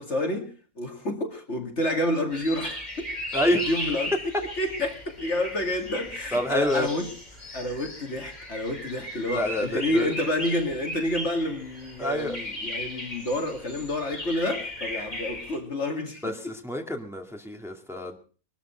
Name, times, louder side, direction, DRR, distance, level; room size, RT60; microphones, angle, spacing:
voice 1, 0.0-3.1 3.7-4.1 4.6-7.1 7.5-16.3, left 1 dB, 50° left, 2.6 m, -29 dB
sound 1, 2.3-15.6, left 1 dB, 30° left, 4.9 m, -37 dB
voice 2, 3.3-3.7 6.3-6.9 9.3-10.1 12.0-12.4 16.2-18.2, left 1 dB, ahead, 2.1 m, -27 dB
22.5 x 13.0 x 4.4 m
omnidirectional pair, 1.5 m